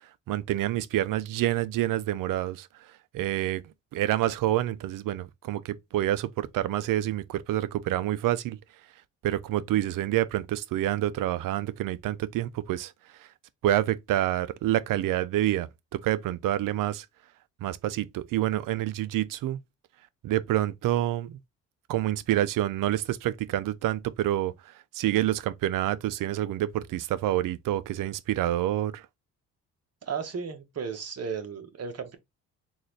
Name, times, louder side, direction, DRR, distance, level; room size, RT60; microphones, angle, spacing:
voice 1, 0.3-2.7 3.1-3.6 3.9-8.6 9.2-12.9 13.6-17.1 17.6-19.6 20.2-21.4 21.9-24.5 24.9-29.1, right 13 dB, 65° right, 0.6 m, -27 dB
voice 2, 30.0-32.2, right 6 dB, 45° right, 1.2 m, -34 dB
3.9 x 2.6 x 3.1 m
supercardioid pair, 75°, 34 cm